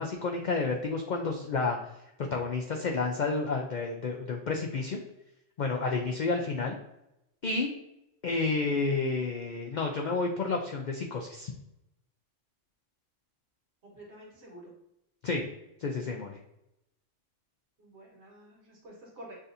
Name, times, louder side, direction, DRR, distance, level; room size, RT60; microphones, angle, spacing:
voice 1, 0.0-1.8 2.3-5.0 5.6-6.8 7.4-7.7 8.2-11.5 15.2-15.4 15.8-16.4, left 3 dB, 70° left, 2 dB, 0.4 m, -30 dB
voice 2, 13.8-14.7 17.8-19.4, right 1 dB, 60° right, -3 dB, 1.6 m, -49 dB
6.4 x 2.7 x 2.5 m, 0.86 s
omnidirectional pair, 1.3 m